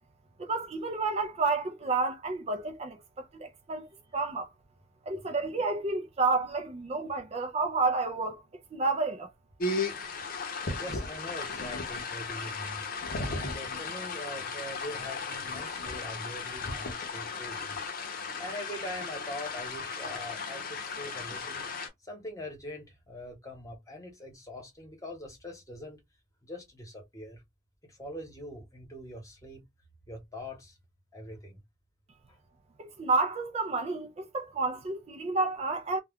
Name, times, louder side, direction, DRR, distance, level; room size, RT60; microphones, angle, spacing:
voice 1, 0.4-3.9 4.1-4.5 5.1-8.4 8.7-9.3 32.8-36.0, right 3 dB, 35° right, 0.4 m, -30 dB
sound 1, 9.6-21.9, left 4 dB, 50° left, 0.7 m, -36 dB
voice 2, 10.8-12.8 13.3-17.9 18.4-21.6 22.0-26.0 26.4-27.4 27.8-29.6 30.1-30.7 31.1-31.6, left 1 dB, 20° left, 1.0 m, -43 dB
2.3 x 2.2 x 3.4 m
head